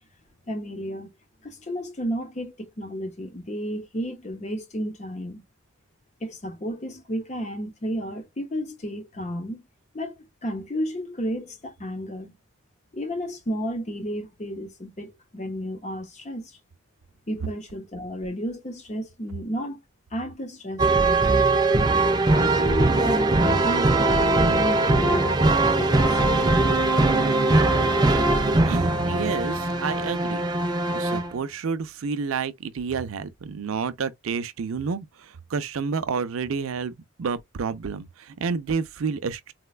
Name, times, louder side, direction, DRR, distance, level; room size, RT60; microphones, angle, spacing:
voice 1, 0.5-1.1 1.4-5.4 6.2-9.7 9.9-12.3 12.9-16.6 17.3-19.8 20.1-21.2 22.3-26.8, equal, 35° left, 0.7 m, -32 dB
sound 1, 20.8-31.3, right 2 dB, 20° right, 0.3 m, -21 dB
voice 2, 28.3-30.5 30.9-39.5, right 5 dB, 75° right, 0.5 m, -30 dB
4.1 x 2.1 x 2.3 m
head